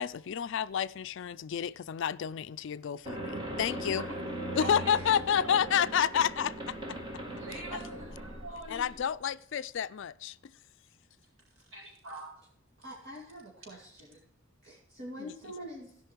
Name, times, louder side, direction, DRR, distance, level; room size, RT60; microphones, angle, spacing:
voice 1, 0.0-4.1 4.5-6.7 7.5-7.8 8.7-10.3, left 8 dB, 60° left, 0.4 m, -30 dB
sound 1, 3.1-9.1, right 1 dB, 20° right, 1.5 m, -39 dB
voice 2, 4.6-5.6 7.4-8.8 11.7-12.3, right 1 dB, 85° right, 4.5 m, -43 dB
voice 3, 12.8-14.2 14.6-16.1, equal, 55° right, 2.5 m, -45 dB
16.0 x 5.6 x 4.6 m
head